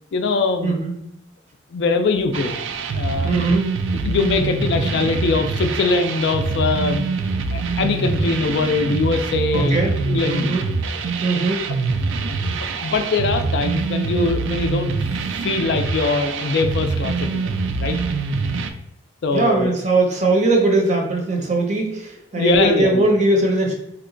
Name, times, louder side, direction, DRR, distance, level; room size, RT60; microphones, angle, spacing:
voice 1, 0.1-0.8 1.7-2.6 3.0-3.4 4.0-9.8 10.1-10.5 12.4-12.5 12.8-14.9 15.3-18.0 19.2-19.7 22.3-23.1, left 3 dB, 65° left, 7 dB, 0.3 m, -22 dB
voice 2, 0.6-0.9 3.2-3.7 9.5-9.9 10.3-10.6 11.2-11.6 19.3-23.7, right 2 dB, 40° right, 1 dB, 0.5 m, -20 dB
sound 1, 2.3-18.7, right 4 dB, 85° right, 0.3 m, -24 dB
2.8 x 2.2 x 3.8 m, 0.82 s
head